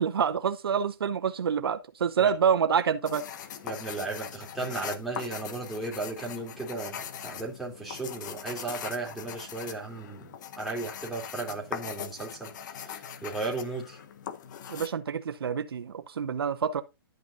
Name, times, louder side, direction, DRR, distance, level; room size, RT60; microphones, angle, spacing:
voice 1, 0.0-3.2 14.7-16.8, right 7 dB, 80° right, 1.0 m, -27 dB
sound 1, 3.1-14.9, left 8 dB, 50° left, 1.4 m, -41 dB
voice 2, 3.6-12.5 12.8-14.0, right 3 dB, ahead, 3.0 m, -35 dB
12.0 x 5.9 x 2.6 m
hypercardioid pair, 145°, 12 cm